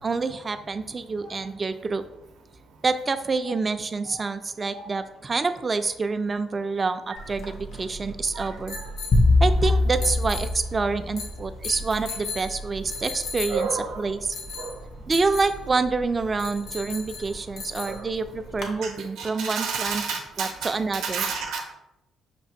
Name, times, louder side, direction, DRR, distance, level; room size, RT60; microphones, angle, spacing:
voice 1, 0.0-2.0 2.8-8.8 9.4-14.2 15.1-20.1 20.4-21.2, right 4 dB, 30° right, 10 dB, 0.3 m, -27 dB
sound 1, 7.2-18.8, left 2 dB, 85° left, 0.7 m, -37 dB
voice 2, 8.3-8.9 9.6-9.7 13.5-14.1 14.6-14.7 17.8-18.0 18.8-18.9 19.2-21.6, right 5 dB, 85° right, 1 dB, 0.6 m, -31 dB
sound 2, 9.1-11.6, left 2 dB, 50° left, 0.5 m, -21 dB
5.9 x 2.4 x 2.6 m, 0.89 s
cardioid pair, 90°, 0 cm